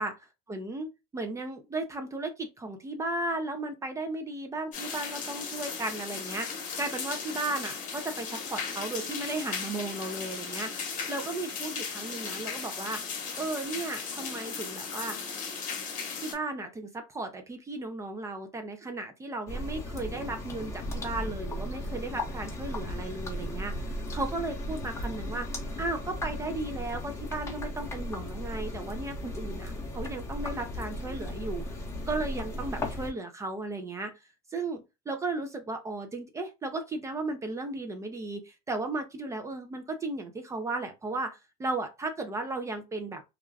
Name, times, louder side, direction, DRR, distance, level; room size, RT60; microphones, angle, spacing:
voice 1, 0.5-13.0 13.4-15.2 16.2-34.2 34.5-43.2, right 2 dB, 15° right, 0.4 m, -35 dB
sound 1, 4.7-16.3, left 5 dB, 40° left, 1.0 m, -37 dB
sound 2, 19.5-33.1, left 1 dB, 15° left, 0.8 m, -36 dB
2.4 x 2.2 x 3.2 m
supercardioid pair, 120°, 19 cm